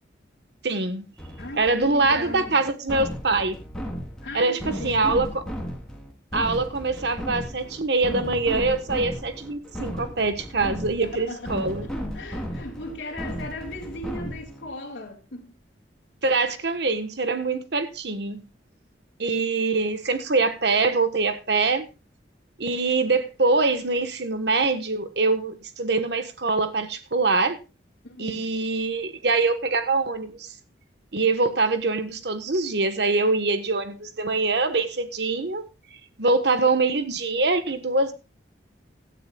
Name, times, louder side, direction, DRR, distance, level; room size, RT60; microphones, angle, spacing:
voice 1, 0.6-1.0 1.6-3.6 4.3-5.4 6.3-11.9 16.2-18.4 19.2-21.8 22.6-27.6 28.2-30.5 31.1-35.6 36.2-38.1, right 3 dB, 65° right, 1.3 m, -24 dB
sound 1, 1.2-14.7, equal, 5° left, 3.3 m, -35 dB
voice 2, 1.4-2.6 4.2-5.4 11.0-15.5 28.0-28.6, left 1 dB, 70° left, 2.4 m, -38 dB
17.0 x 12.5 x 2.3 m
head